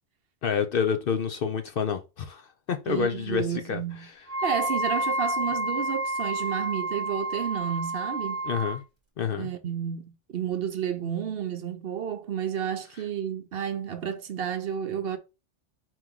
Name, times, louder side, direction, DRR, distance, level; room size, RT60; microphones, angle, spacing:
voice 1, 0.4-4.2 8.4-8.8 9.2-9.5, left 7 dB, 60° left, 0.7 m, -28 dB
voice 2, 2.9-4.1 4.4-8.4 9.4-15.2, right 8 dB, 60° right, 0.8 m, -31 dB
Wind instrument woodwind instrument, 4.3-8.8, right 1 dB, 10° right, 1.2 m, -30 dB
4.7 x 2.9 x 3.6 m
omnidirectional pair, 1.3 m